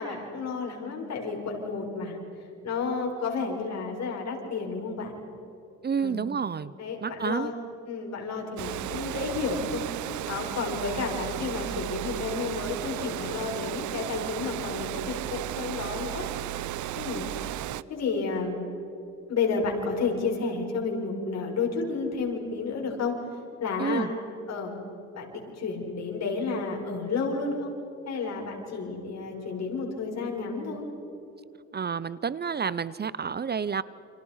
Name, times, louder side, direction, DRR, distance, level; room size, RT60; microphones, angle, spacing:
voice 1, 0.0-2.2 2.6-5.1 6.0-6.2 6.8-7.5 7.9-9.8 10.3-16.3 16.9-17.3 17.9-18.6 19.3-23.2 23.6-24.1 24.5-24.8 25.1-27.7 28.1-30.8, left 4 dB, 60° left, 0 dB, 7.2 m, -31 dB
voice 2, 5.8-6.7 7.0-7.5 23.8-24.1 31.7-33.8, right 6 dB, 35° right, 17 dB, 0.7 m, -29 dB
Water, 8.6-17.8, right 14 dB, 75° right, 0.7 m, -34 dB
29.5 x 28.5 x 5.7 m, 3.0 s
cardioid pair, 90°, 30 cm